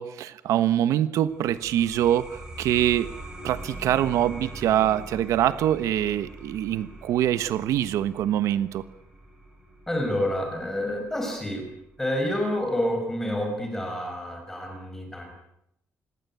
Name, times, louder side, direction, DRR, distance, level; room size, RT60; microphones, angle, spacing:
voice 1, 0.0-3.1 3.4-8.8, right 11 dB, 85° right, 13 dB, 1.2 m, -24 dB
sound 1, 1.2-12.4, right 1 dB, 10° right, 7.8 m, -43 dB
voice 2, 9.9-11.6 12.0-15.3, left 1 dB, 10° left, 3 dB, 5.1 m, -28 dB
27.0 x 21.0 x 8.4 m, 0.81 s
cardioid pair, 180°, 5 cm